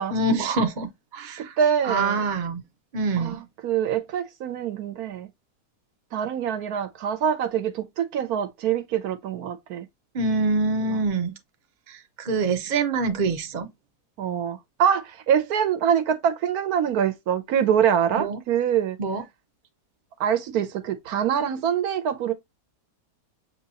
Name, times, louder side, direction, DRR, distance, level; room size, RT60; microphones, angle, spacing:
voice 1, 0.1-1.6 1.8-2.6 2.9-3.4 10.1-11.3 11.9-13.7 18.2-18.4 19.0-19.2, right 3 dB, 45° right, 0.6 m, -25 dB
voice 2, 1.4-2.2 3.2-5.3 6.1-9.9 10.9-11.0 14.2-19.0 20.2-22.3, right 8 dB, 70° right, 1.1 m, -25 dB
6.7 x 2.8 x 2.7 m
omnidirectional pair, 1.8 m